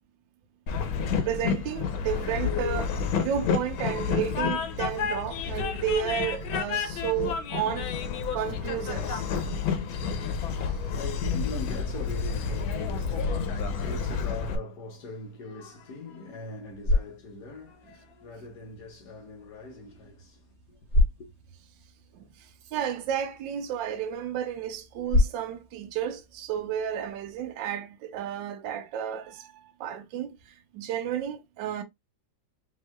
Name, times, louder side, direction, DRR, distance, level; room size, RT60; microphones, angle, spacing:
Train, 0.7-14.6, left 6 dB, 85° left, 1.6 m, -30 dB
voice 1, 1.3-7.9 8.3-9.2 10.6-10.7 22.1-31.8, right 9 dB, 75° right, 1.3 m, -32 dB
voice 2, 10.2-20.8 21.2-21.3, left 4 dB, 60° left, 1.3 m, -41 dB
sound 1, 16.5-27.5, left 2 dB, 45° left, 2.5 m, -32 dB
5.4 x 3.1 x 2.2 m
omnidirectional pair, 2.1 m